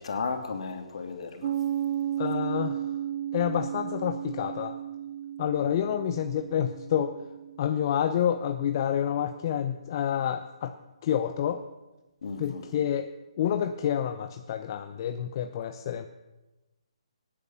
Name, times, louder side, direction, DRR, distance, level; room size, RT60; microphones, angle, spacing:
voice 1, 0.0-1.5 5.8-5.9 12.2-12.6, left 4 dB, 60° left, 5 dB, 3.1 m, -34 dB
Piano, 1.4-8.6, right 10 dB, 45° right, 0.5 m, -34 dB
voice 2, 2.2-2.8 3.3-4.8 5.4-7.2 7.6-10.8 11.0-11.6 12.4-13.1 13.4-16.1, left 9 dB, 40° left, 8 dB, 0.9 m, -28 dB
19.0 x 10.5 x 7.2 m, 1.1 s
hypercardioid pair, 150°, 3 cm